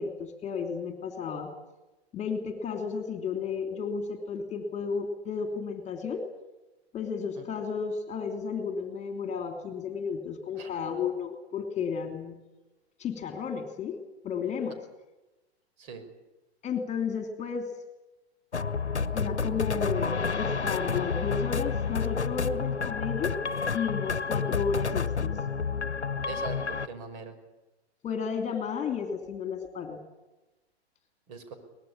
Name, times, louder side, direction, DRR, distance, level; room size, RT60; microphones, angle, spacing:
voice 1, 0.0-1.5 2.1-6.2 6.9-12.4 13.0-14.0 14.2-14.8 16.6-17.7 19.1-23.4 23.7-25.4 28.0-30.0, left 6 dB, 20° left, 5 dB, 3.0 m, -33 dB
sound 1, 18.5-26.9, left 5 dB, 85° left, 1.0 m, -30 dB
voice 2, 26.2-27.3 31.3-31.5, right 4 dB, 45° right, 8 dB, 5.7 m, -41 dB
23.5 x 20.0 x 8.6 m, 1.0 s
figure-of-eight pair, 105°, 33 cm